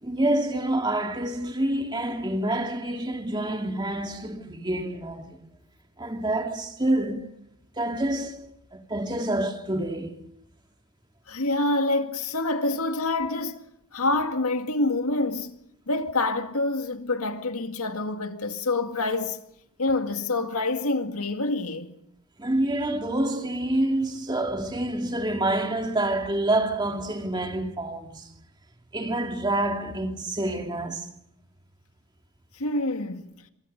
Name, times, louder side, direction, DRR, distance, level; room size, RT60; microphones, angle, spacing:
voice 1, 0.0-5.4 6.0-7.3 7.8-10.3 22.4-28.3 28.9-31.1, right 1 dB, 20° right, 2.2 m, -27 dB
voice 2, 11.3-13.6 13.9-15.6 15.9-19.4 19.8-22.0 32.6-33.3, left 2 dB, 85° left, 2.2 m, -27 dB
26.5 x 24.0 x 5.4 m
head